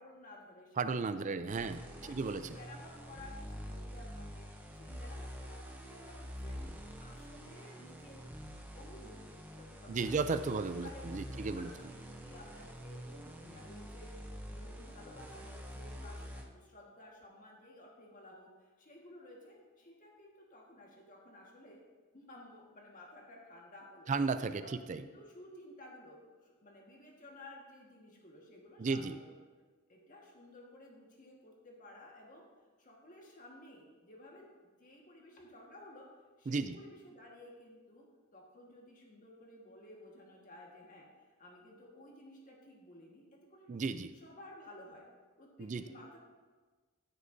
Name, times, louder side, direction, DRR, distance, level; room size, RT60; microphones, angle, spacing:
voice 1, 0.0-1.7 2.0-6.6 7.0-8.2 8.7-10.1 10.4-21.8 22.1-24.1 24.6-29.3 29.9-32.5 32.8-34.5 34.8-36.1 36.4-38.1 38.3-41.1 41.4-43.7 44.1-45.1 45.4-46.2, left 1 dB, 35° left, -1 dB, 1.6 m, -55 dB
voice 2, 0.8-2.6 9.9-11.7 24.1-24.6 24.9-25.0 28.8-29.2 36.5-36.8 43.7-44.1 45.6-45.8, right 4 dB, 35° right, 11 dB, 0.3 m, -34 dB
sound 1, 1.5-16.4, equal, 10° right, 0.7 m, -46 dB
14.0 x 6.6 x 2.7 m, 1.4 s
head